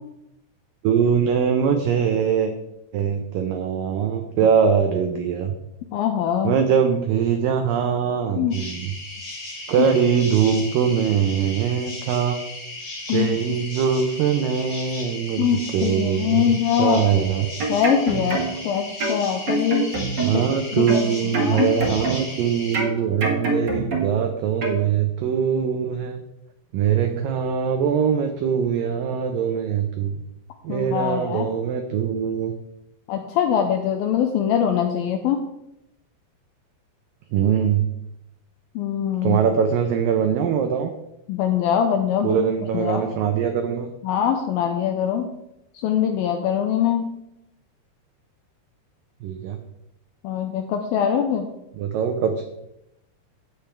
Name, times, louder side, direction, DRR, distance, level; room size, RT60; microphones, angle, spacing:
voice 1, 0.8-2.5 2.9-5.5 6.4-8.9 9.7-12.4 13.1-15.4 15.7-17.5 20.2-26.2 26.7-30.2 30.6-32.5 37.3-37.9 39.2-40.9 42.2-43.9 49.2-49.6 51.8-52.4, right 7 dB, 85° right, 6 dB, 1.9 m, -22 dB
voice 2, 5.9-6.6 8.4-8.6 9.8-9.9 13.1-13.3 15.4-17.0 17.7-19.9 20.3-20.5 20.8-21.7 30.7-31.5 33.1-35.4 38.8-39.4 41.3-42.4 42.7-43.1 44.0-45.3 45.7-47.1 50.2-51.5, left 9 dB, 85° left, 5 dB, 2.1 m, -23 dB
sound 1, 8.5-22.8, left 2 dB, 40° left, 1.8 m, -36 dB
sound 2, 17.4-18.7 19.0-20.5 20.9-22.4 22.7-24.3 24.6-24.8, right 3 dB, 50° right, 1.3 m, -26 dB
10.5 x 8.5 x 3.4 m, 0.83 s
omnidirectional pair, 4.9 m